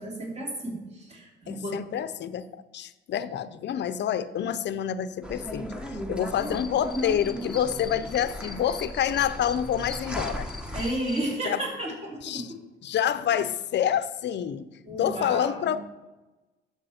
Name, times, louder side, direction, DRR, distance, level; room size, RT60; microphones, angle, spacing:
voice 1, 0.0-1.8 10.7-12.6 14.8-15.8, right 1 dB, 30° right, -1 dB, 3.0 m, -33 dB
voice 2, 1.5-10.5 11.4-11.6 12.2-12.5 12.8-14.7 15.0-15.8, left 9 dB, 60° left, 13 dB, 0.6 m, -28 dB
sound 1, 5.2-10.9, equal, 5° right, 1.1 m, -36 dB
sound 2, 6.4-11.4, left 4 dB, 25° left, 1.2 m, -43 dB
11.5 x 7.3 x 4.3 m, 1.1 s
cardioid pair, 90°, 20 cm